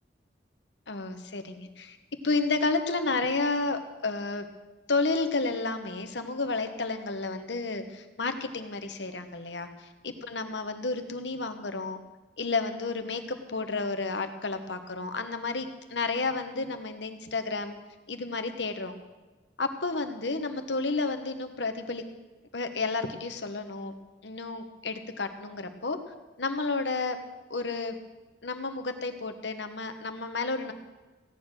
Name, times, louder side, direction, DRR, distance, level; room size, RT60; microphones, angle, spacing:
voice 1, 0.9-2.0 2.2-4.4 4.9-9.7 10.0-12.0 12.4-17.8 18.1-18.9 19.6-22.0 22.5-23.9 24.2-26.0 26.4-27.2 27.5-28.0 28.4-30.7, left 3 dB, 85° left, 7 dB, 1.3 m, -31 dB
16.0 x 9.9 x 6.4 m, 1.2 s
head